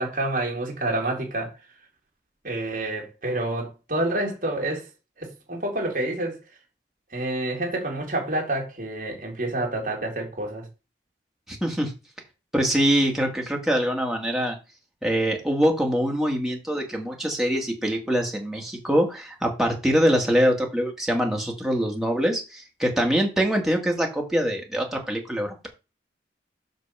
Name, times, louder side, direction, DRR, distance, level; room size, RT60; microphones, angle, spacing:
voice 1, 0.0-1.5 2.4-4.8 5.2-6.4 7.1-10.6, right 1 dB, 50° right, 3.1 m, -28 dB
voice 2, 11.5-11.9 12.5-14.6 15.0-25.7, equal, ahead, 1.7 m, -24 dB
5.9 x 5.4 x 5.9 m
head